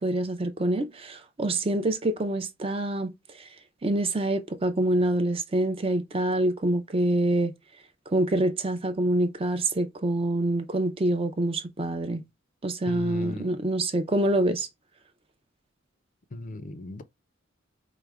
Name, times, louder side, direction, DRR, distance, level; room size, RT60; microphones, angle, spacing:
voice 1, 0.0-3.5 3.8-7.5 8.1-12.2 12.6-14.7, right 1 dB, 25° right, 0.5 m, -26 dB
voice 2, 12.8-13.5 16.3-17.0, left 2 dB, 40° left, 0.5 m, -36 dB
4.8 x 2.1 x 3.4 m
head